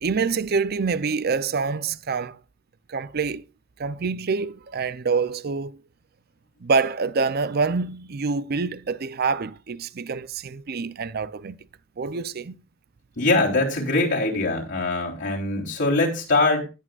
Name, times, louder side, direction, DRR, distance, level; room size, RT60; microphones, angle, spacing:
voice 1, 0.0-2.4 2.9-3.4 3.8-5.8 6.6-11.6 12.0-12.6, right 4 dB, 50° right, 0.6 m, -26 dB
voice 2, 13.2-16.7, left 2 dB, 65° left, 3.6 m, -22 dB
19.5 x 8.7 x 2.4 m
head